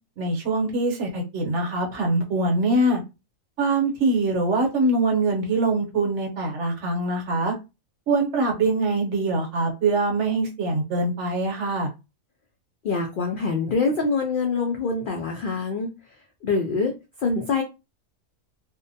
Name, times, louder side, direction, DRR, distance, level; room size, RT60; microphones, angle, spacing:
voice 1, 0.2-3.0 3.6-7.5 8.1-11.9, right 2 dB, 60° right, 1.0 m, -23 dB
voice 2, 12.8-15.9 16.4-16.9 17.2-17.6, left 4 dB, 90° left, 0.4 m, -25 dB
2.6 x 2.1 x 2.6 m
omnidirectional pair, 1.5 m